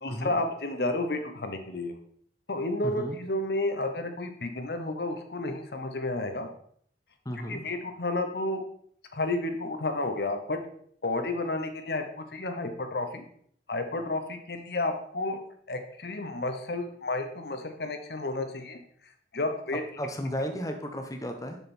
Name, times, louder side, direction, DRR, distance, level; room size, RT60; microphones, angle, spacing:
voice 1, 0.0-1.9 2.5-6.5 7.5-8.6 9.1-10.6 11.0-13.2 13.7-15.4 15.7-18.8 19.3-19.8, left 2 dB, 65° left, 6 dB, 0.9 m, -31 dB
voice 2, 2.8-3.2 7.2-7.6 20.0-21.6, equal, 20° left, 5 dB, 1.0 m, -34 dB
6.7 x 6.6 x 4.3 m, 0.63 s
head